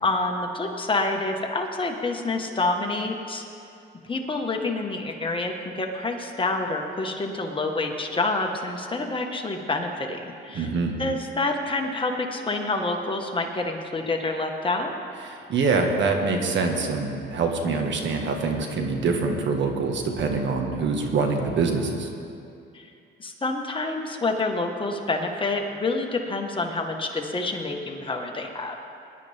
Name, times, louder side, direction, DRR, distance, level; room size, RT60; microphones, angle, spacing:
voice 1, 0.0-3.4 4.1-10.7 11.0-14.9 22.7-22.9 23.2-28.8, left 2 dB, 25° left, 2 dB, 1.5 m, -27 dB
voice 2, 10.5-11.0 15.2-22.1, right 4 dB, 65° right, 3 dB, 1.6 m, -25 dB
19.5 x 11.0 x 3.6 m, 2.6 s
cardioid pair, 90°, 20 cm